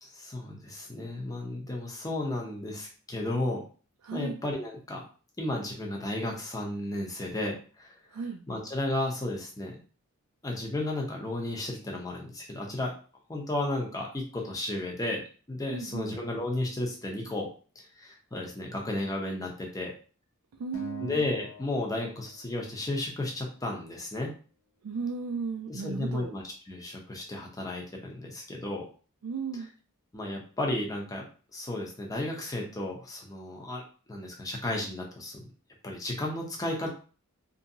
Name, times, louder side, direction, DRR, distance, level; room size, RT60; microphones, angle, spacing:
voice 1, 0.0-3.6 4.1-5.0 5.4-7.9 8.5-9.8 10.4-12.9 13.3-15.2 15.5-17.5 17.8-19.9 21.0-24.3 25.7-28.9 29.5-29.7 30.1-31.3 31.5-33.8 34.1-35.5 35.8-36.9, left 1 dB, 15° left, -1 dB, 0.6 m, -33 dB
voice 2, 4.0-4.4 8.1-8.4 15.7-16.1 20.6-21.2 24.8-26.3 29.2-29.7, right 5 dB, 70° right, 2 dB, 0.3 m, -35 dB
Acoustic guitar, 20.7-23.1, left 1 dB, 60° left, 0.8 m, -46 dB
2.7 x 2.6 x 2.7 m, 0.38 s
head